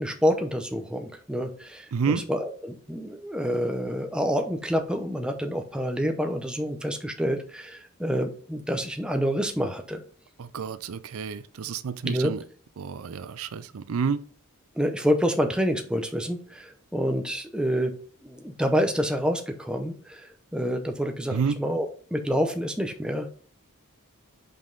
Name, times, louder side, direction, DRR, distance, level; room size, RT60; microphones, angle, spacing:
voice 1, 0.0-10.0 12.0-12.3 14.8-17.9 18.2-23.3, equal, 5° right, 0.6 m, -28 dB
voice 2, 1.9-2.2 10.4-12.4 12.8-14.2 21.3-21.6, right 5 dB, 75° right, 0.4 m, -29 dB
5.4 x 5.3 x 3.9 m
head